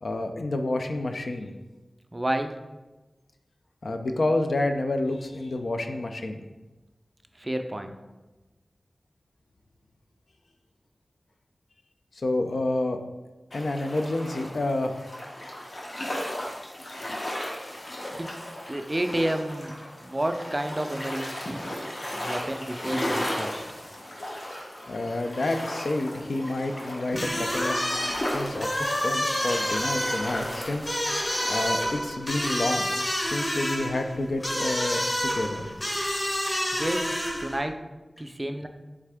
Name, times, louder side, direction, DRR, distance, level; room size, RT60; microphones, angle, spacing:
voice 1, 0.0-1.5 3.8-6.4 12.1-13.0 13.5-15.0 18.0-18.2 24.9-27.9 28.3-31.0 31.5-35.8, left 2 dB, 75° left, 6 dB, 0.3 m, -29 dB
voice 2, 2.1-2.6 7.4-7.9 18.2-21.7 22.2-23.6 36.7-37.1 37.4-37.8 38.2-38.7, right 1 dB, 25° right, 6 dB, 0.3 m, -30 dB
sound 1, 13.5-31.7, left 1 dB, 60° left, 0.9 m, -35 dB
sound 2, 27.1-37.6, equal, 35° left, 1.0 m, -29 dB
3.6 x 3.3 x 3.4 m, 1.1 s
wide cardioid pair, 55°, 0 cm